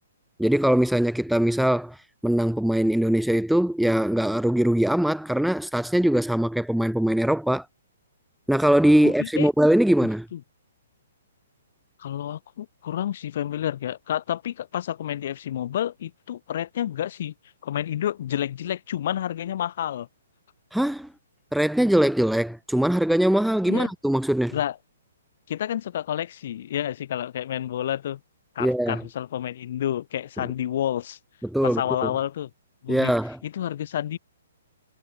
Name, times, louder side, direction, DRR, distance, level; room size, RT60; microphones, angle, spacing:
voice 1, 0.4-7.7 8.5-10.3 20.7-21.1 21.5-24.6 28.6-29.0 30.4-30.5 31.4-32.1 32.9-33.4, right 1 dB, ahead, 0.3 m, -22 dB
voice 2, 9.0-9.5 10.3-10.4 12.0-17.3 17.6-20.1 23.7-23.9 24.5-24.8 25.5-28.2 28.6-31.2 31.6-32.5 32.8-33.1 33.4-34.2, left 11 dB, 55° left, 4.2 m, -29 dB
hypercardioid pair, 125°, 0 cm